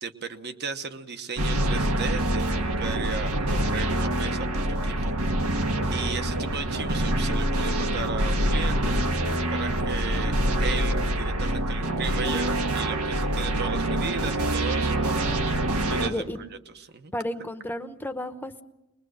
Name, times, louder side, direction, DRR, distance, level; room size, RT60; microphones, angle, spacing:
voice 1, 0.0-5.2 5.9-9.0 9.5-15.4 15.9-16.2 16.8-17.1, right 5 dB, 50° right, 8 dB, 1.1 m, -35 dB
sound 1, 1.4-16.1, right 1 dB, 85° right, 1.7 m, -25 dB
voice 2, 16.0-16.4 17.1-18.6, left 1 dB, 10° left, 7 dB, 0.9 m, -32 dB
22.5 x 21.5 x 6.5 m, 0.98 s
head